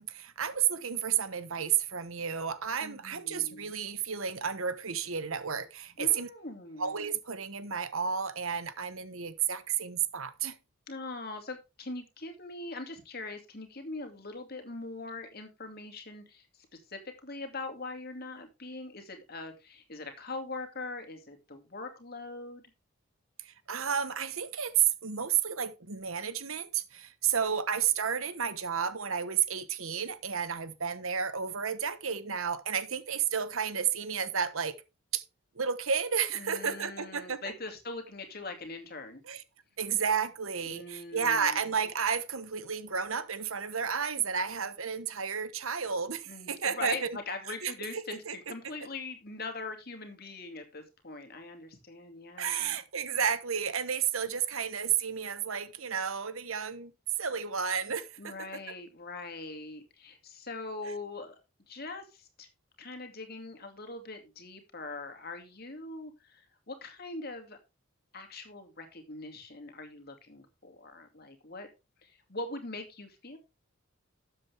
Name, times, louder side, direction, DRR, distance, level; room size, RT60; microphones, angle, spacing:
voice 1, 0.0-6.3 6.8-10.5 23.4-34.8 35.1-35.2 35.5-37.4 39.3-39.4 39.8-47.2 47.6-48.3 52.4-56.9 57.2-58.3, right 7 dB, 80° right, 1.2 m, -32 dB
voice 2, 2.8-3.7 6.0-6.9 10.9-22.6 36.3-39.2 40.7-41.6 46.3-52.8 58.2-61.4 61.7-62.5 62.8-67.6 68.1-71.7 72.0-73.4, left 3 dB, 45° left, 2.5 m, -42 dB
12.5 x 7.7 x 3.5 m
head